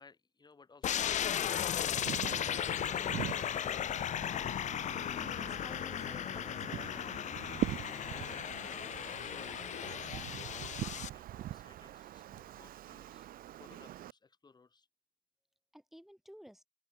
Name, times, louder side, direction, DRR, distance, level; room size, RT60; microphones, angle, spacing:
voice 1, 0.0-1.9 8.1-13.3 13.5-14.9, left 4 dB, 25° left, 5.3 m, -59 dB
sound 1, 0.8-11.1, left 10 dB, 45° left, 0.6 m, -36 dB
Wind, 1.8-14.1, right 13 dB, 60° right, 0.6 m, -43 dB
voice 2, 5.2-7.3 15.7-16.7, equal, ahead, 6.6 m, -54 dB
cardioid pair, 110°, 17 cm